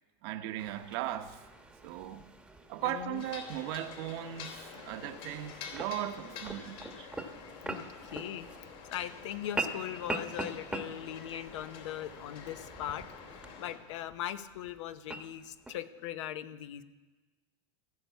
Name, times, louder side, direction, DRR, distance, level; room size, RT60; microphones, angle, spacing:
voice 1, 0.2-1.4 1.8-2.2 2.7-7.1, right 12 dB, 60° right, 1.0 m, -38 dB
sound 1, 0.6-15.8, right 2 dB, 5° right, 1.0 m, -44 dB
voice 2, 2.8-3.2 7.6-8.5 8.9-16.8, left 11 dB, 85° left, 0.9 m, -40 dB
sound 2, 3.1-13.8, left 6 dB, 60° left, 2.9 m, -48 dB
16.0 x 6.7 x 8.2 m
supercardioid pair, 145°, 15 cm